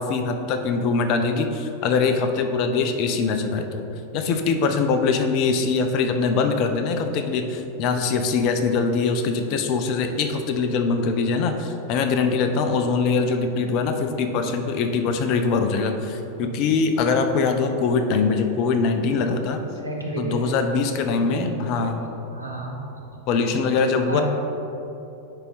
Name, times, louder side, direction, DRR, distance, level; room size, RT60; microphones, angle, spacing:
voice 1, 0.0-3.8 4.1-19.6 20.2-22.0 23.3-24.2, left 4 dB, 40° left, 6 dB, 0.6 m, -23 dB
voice 2, 19.8-20.6 21.3-21.9 22.3-22.8 24.1-24.2, equal, 85° right, -1 dB, 1.0 m, -30 dB
9.8 x 3.6 x 3.9 m, 2.9 s
figure-of-eight pair, 90°, 0 cm